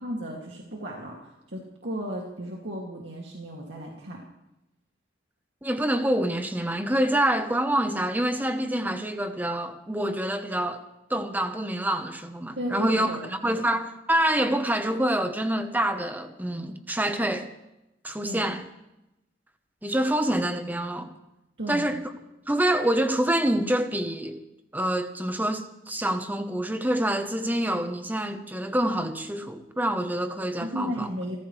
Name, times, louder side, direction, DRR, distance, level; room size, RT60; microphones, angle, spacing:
voice 1, 0.0-4.2 12.6-13.2 13.5-13.6 18.2-18.5 21.6-21.9 30.6-31.4, equal, 75° right, 2.5 m, -34 dB
voice 2, 5.6-10.8 11.1-17.5 18.0-18.6 19.8-21.2 21.7-22.0 22.5-24.4 24.7-31.1, right 1 dB, 10° right, 1.0 m, -26 dB
29.0 x 14.5 x 3.3 m
head